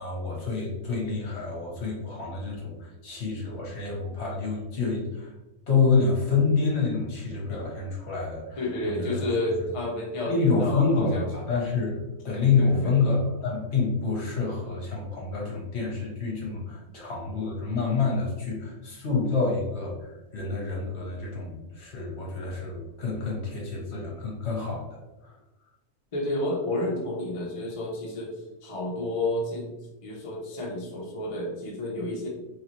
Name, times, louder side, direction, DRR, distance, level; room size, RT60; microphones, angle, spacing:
voice 1, 0.0-5.3 5.7-9.2 10.3-12.0 12.2-24.8 25.2-25.3, left 4 dB, 50° left, -2 dB, 1.1 m, -27 dB
voice 2, 8.6-11.3 12.6-13.0 26.1-28.3 28.6-29.7 30.0-32.3, left 1 dB, 35° left, -3 dB, 0.6 m, -30 dB
3.9 x 3.3 x 3.0 m, 1.1 s
omnidirectional pair, 1.6 m